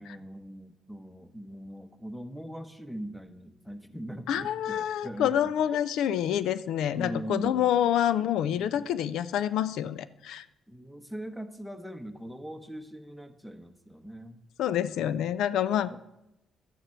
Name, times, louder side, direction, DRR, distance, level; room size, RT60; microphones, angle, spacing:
voice 1, 0.0-5.4 5.7-5.8 6.9-7.9 8.4-8.9 10.7-14.4 15.9-16.0, equal, ahead, 9 dB, 1.0 m, -41 dB
voice 2, 4.3-10.4 14.6-16.0, left 10 dB, 85° left, 15 dB, 0.4 m, -27 dB
11.5 x 9.0 x 4.4 m, 0.90 s
cardioid pair, 90°, 0 cm